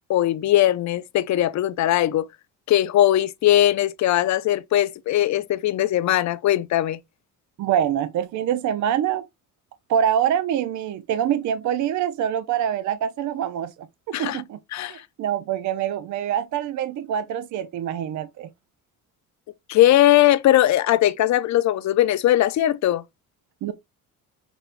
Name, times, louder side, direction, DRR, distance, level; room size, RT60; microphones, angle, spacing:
voice 1, 0.1-2.3 2.7-7.0 14.1-14.4 14.7-15.0 19.7-23.0, left 13 dB, 55° left, 0.5 m, -20 dB
voice 2, 7.6-9.3 9.9-13.7 14.1-14.6 14.9-18.5 23.6-23.7, right 9 dB, 55° right, 0.5 m, -25 dB
5.9 x 3.3 x 2.4 m
cardioid pair, 150°, 35 cm